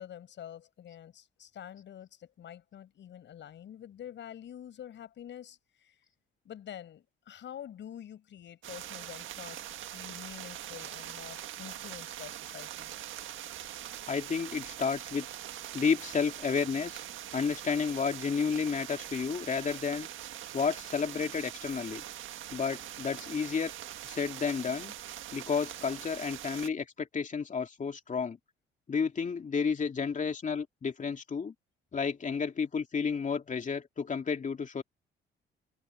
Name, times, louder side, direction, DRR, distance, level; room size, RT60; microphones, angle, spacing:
voice 1, 0.0-5.9 6.4-9.6 9.9-12.9, left 10 dB, 65° left, 6.6 m, -47 dB
sound 1, 8.6-26.7, right 12 dB, 80° right, 1.6 m, -43 dB
voice 2, 14.1-15.3 15.7-17.0 17.3-20.1 20.5-22.0 22.5-23.7 24.0-24.9 25.3-28.4 28.9-31.5 31.9-34.8, left 5 dB, 40° left, 2.9 m, -31 dB
cardioid pair, 90°, 20 cm